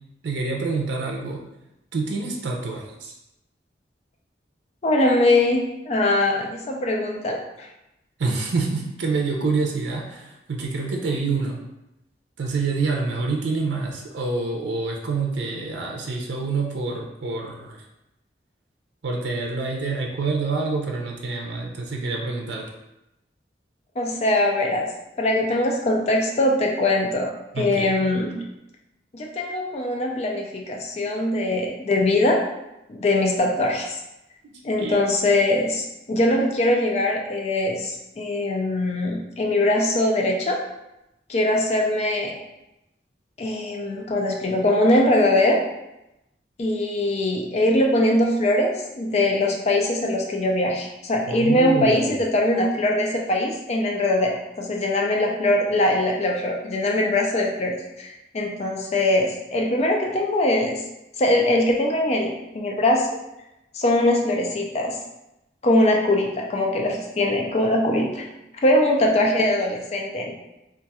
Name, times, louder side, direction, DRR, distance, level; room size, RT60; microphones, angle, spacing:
voice 1, 0.2-1.4 1.9-3.1 8.2-11.6 12.4-17.8 19.0-22.7 27.5-28.0 34.4-34.5 34.8-35.0 51.3-52.2, right 3 dB, 80° right, 0 dB, 0.5 m, -27 dB
voice 2, 4.8-7.7 24.0-24.9 25.2-28.3 29.1-32.4 32.9-34.0 34.6-40.6 41.3-42.3 43.4-45.6 46.6-60.8 61.2-63.1 63.7-65.0 65.6-68.2 68.6-70.3, left 1 dB, 35° left, 1 dB, 0.4 m, -22 dB
2.5 x 2.3 x 4.1 m, 0.91 s
head